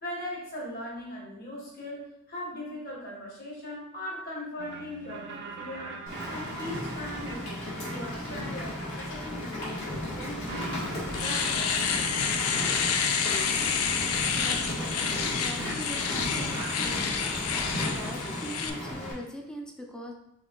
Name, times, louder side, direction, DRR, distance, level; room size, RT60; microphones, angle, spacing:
voice 1, 0.0-2.0 2.3-5.2 5.6-6.0 6.3-7.6 7.9-10.8 11.2-12.0, left 1 dB, 45° left, -3 dB, 1.4 m, -39 dB
sound 1, 4.6-17.3, right 4 dB, 55° right, 0.6 m, -44 dB
Rain, 6.1-19.1, left 1 dB, 65° left, 1.6 m, -35 dB
Domestic sounds home sounds, 10.5-10.6 10.9-18.7, left 6 dB, 90° left, 0.5 m, -29 dB
voice 2, 14.3-20.1, equal, 5° left, 0 dB, 0.5 m, -42 dB
4.6 x 2.8 x 3.8 m, 0.83 s
head